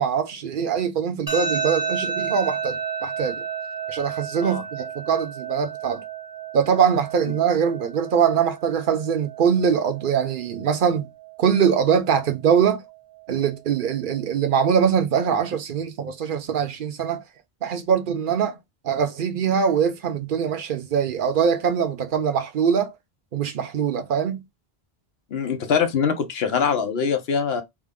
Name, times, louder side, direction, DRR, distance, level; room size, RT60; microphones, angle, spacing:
voice 1, 0.0-3.4 3.9-6.0 6.5-11.1 11.4-12.8 13.3-17.2 17.6-18.6 18.8-22.9 23.3-24.4, right 7 dB, 60° right, 0.8 m, -22 dB
sound 1, 1.3-14.2, right 5 dB, 20° right, 0.7 m, -33 dB
voice 2, 25.3-27.6, left 6 dB, 75° left, 1.0 m, -23 dB
3.6 x 2.1 x 3.5 m
omnidirectional pair, 1.0 m